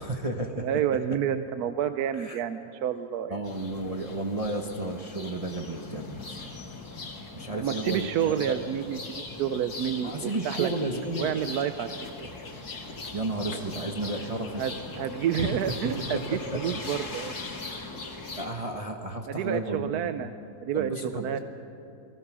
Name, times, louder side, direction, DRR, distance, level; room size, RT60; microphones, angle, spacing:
voice 1, 0.0-0.7 2.2-2.4 3.3-6.4 7.3-8.6 10.0-11.4 13.1-14.6 15.4-15.6 16.1-16.2 16.7-16.8 17.7-17.9 18.4-20.1 20.7-21.4, right 2 dB, 25° right, 2 dB, 1.2 m, -32 dB
voice 2, 0.6-3.4 7.6-10.7 11.2-11.9 14.6-17.3 19.3-20.3 20.6-21.4, right 9 dB, 80° right, 10 dB, 1.2 m, -29 dB
sound 1, 3.4-18.5, left 3 dB, 85° left, 2.8 m, -40 dB
29.5 x 20.0 x 6.2 m, 2.8 s
omnidirectional pair, 1.6 m